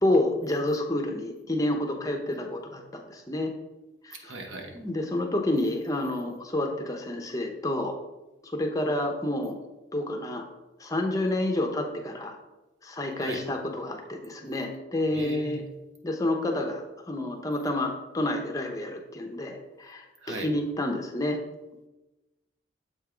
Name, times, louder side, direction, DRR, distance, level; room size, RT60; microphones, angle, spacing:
voice 1, 0.0-3.5 4.0-4.1 4.7-7.9 8.5-9.6 9.9-10.4 10.8-12.4 12.8-15.6 16.0-21.4, left 1 dB, 20° left, 3 dB, 0.7 m, -29 dB
voice 2, 4.1-4.8 13.2-13.4 15.1-15.6 20.2-20.5, right 2 dB, 85° right, 3 dB, 1.1 m, -38 dB
7.3 x 3.5 x 4.9 m, 1.0 s
head